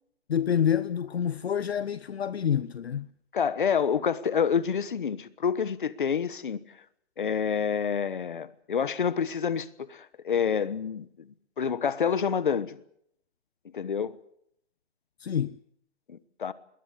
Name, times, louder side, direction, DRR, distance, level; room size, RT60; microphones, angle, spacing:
voice 1, 0.3-3.1 15.2-15.6, left 8 dB, 60° left, 0.8 m, -27 dB
voice 2, 3.3-6.6 7.2-11.3 11.6-12.8 13.7-14.2 16.1-16.5, left 7 dB, 45° left, 1.2 m, -28 dB
21.0 x 18.5 x 8.3 m
hypercardioid pair, 180°, 35 cm